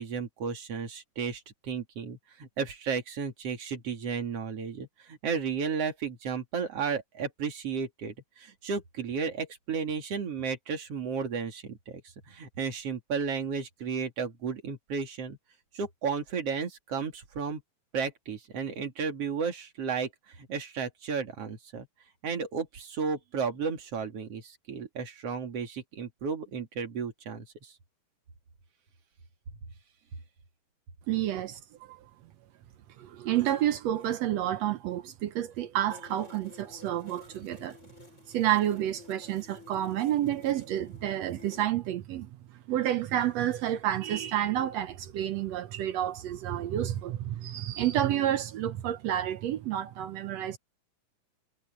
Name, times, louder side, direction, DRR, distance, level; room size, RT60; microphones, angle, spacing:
voice 1, 0.0-12.0 12.3-15.4 15.7-17.6 17.9-21.9 22.2-27.7, right 6 dB, 50° right, 3.2 m, -33 dB
voice 2, 31.1-31.6 31.9-32.0 33.0-37.8 38.3-42.3 42.7-50.6, right 12 dB, 75° right, 1.6 m, -29 dB
sound 1, 35.9-41.6, left 4 dB, 20° left, 6.6 m, -52 dB
omnidirectional pair, 3.8 m